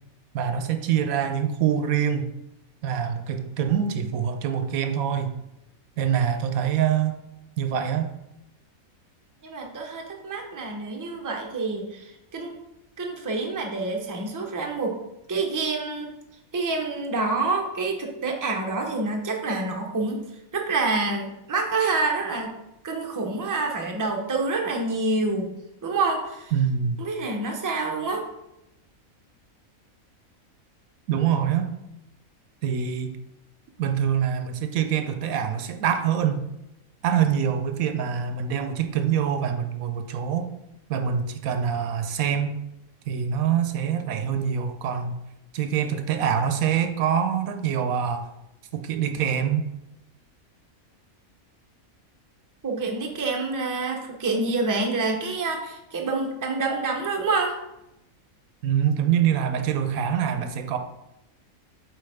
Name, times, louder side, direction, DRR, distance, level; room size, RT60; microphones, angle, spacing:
voice 1, 0.3-2.3 2.8-5.4 6.0-7.2 7.6-8.1 26.5-27.0 31.1-31.7 32.6-33.2 33.8-36.5 37.0-40.5 40.9-42.6 43.1-45.2 45.5-48.3 48.7-49.7 58.6-60.8, right 8 dB, 80° right, 8 dB, 1.1 m, -25 dB
voice 2, 9.4-12.6 13.0-15.0 15.3-16.1 16.5-20.2 20.5-22.5 22.8-25.5 25.8-26.5 27.0-28.2 52.6-57.6, right 3 dB, 20° right, 1 dB, 0.6 m, -27 dB
7.9 x 4.3 x 3.4 m, 0.88 s
omnidirectional pair, 1.5 m